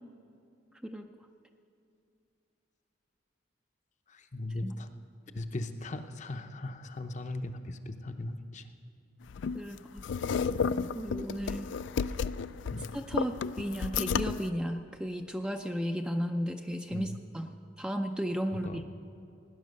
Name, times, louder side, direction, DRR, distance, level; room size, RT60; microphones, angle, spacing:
voice 1, 4.1-4.9 5.3-8.7 12.7-12.9 16.9-17.2 18.6-18.9, left 2 dB, 35° left, 7 dB, 0.7 m, -38 dB
sound 1, 9.3-14.5, left 6 dB, 60° left, 0.3 m, -32 dB
voice 2, 9.5-10.0 10.9-11.7 12.9-17.5 17.8-18.9, equal, 5° right, 4 dB, 0.4 m, -34 dB
17.5 x 10.0 x 6.5 m, 2.7 s
head